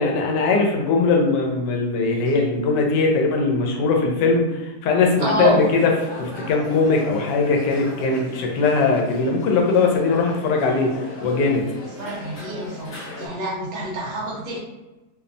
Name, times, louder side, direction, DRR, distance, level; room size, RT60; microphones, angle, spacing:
voice 1, 0.0-5.9 6.2-11.7, left 4 dB, 90° left, 1 dB, 1.2 m, -20 dB
voice 2, 5.2-5.6 12.0-14.6, right 2 dB, 65° right, -3 dB, 1.1 m, -26 dB
sound 1, 5.5-13.3, left 1 dB, 55° left, 1.0 m, -38 dB
2.9 x 2.0 x 2.5 m, 1.1 s
omnidirectional pair, 1.8 m